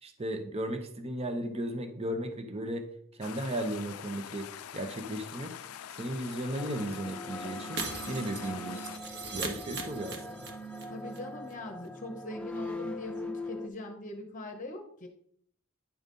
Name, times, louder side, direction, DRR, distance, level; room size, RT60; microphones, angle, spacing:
voice 1, 0.0-2.9 3.2-4.5 4.7-5.5 6.0-8.8 9.3-10.5, right 1 dB, 30° right, 6 dB, 0.8 m, -35 dB
Gurgling Bubbling Water, 3.2-9.0, left 10 dB, 80° left, 0.4 m, -44 dB
sound 1, 6.6-13.7, left 1 dB, 5° left, 0.5 m, -41 dB
Shatter, 7.8-10.8 11.1-11.2 11.5-11.6, right 3 dB, 55° right, 1.4 m, -39 dB
voice 2, 10.9-15.1, left 1 dB, 35° left, 4 dB, 0.9 m, -41 dB
10.0 x 4.0 x 5.3 m, 0.65 s
head